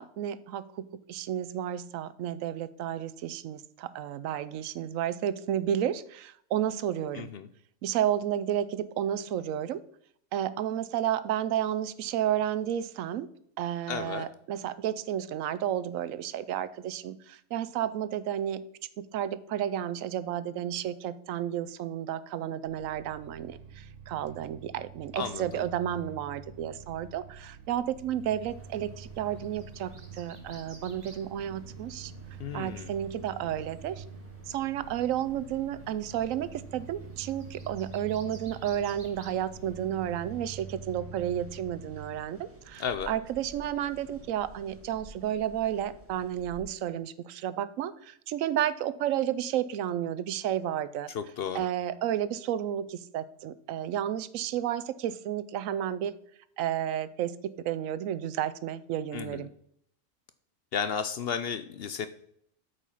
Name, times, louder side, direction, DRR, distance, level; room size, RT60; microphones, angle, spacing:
voice 1, 0.0-7.3 7.8-9.8 10.3-13.3 13.6-18.6 19.0-32.1 32.5-34.0 34.5-51.1 51.5-56.1 56.6-59.5, right 10 dB, 85° right, 16 dB, 1.0 m, -32 dB
voice 2, 7.1-7.5 13.9-14.3 25.2-25.6 32.4-32.9 42.8-43.1 51.1-51.7 59.1-59.5 60.7-62.1, left 7 dB, 65° left, 11 dB, 0.6 m, -33 dB
sound 1, 22.6-42.2, right 5 dB, 65° right, 1.2 m, -47 dB
sound 2, 28.0-40.4, right 2 dB, 45° right, 1.7 m, -58 dB
sound 3, 28.4-46.6, right 2 dB, 10° right, 1.4 m, -53 dB
8.3 x 5.3 x 5.6 m, 0.68 s
omnidirectional pair, 1.3 m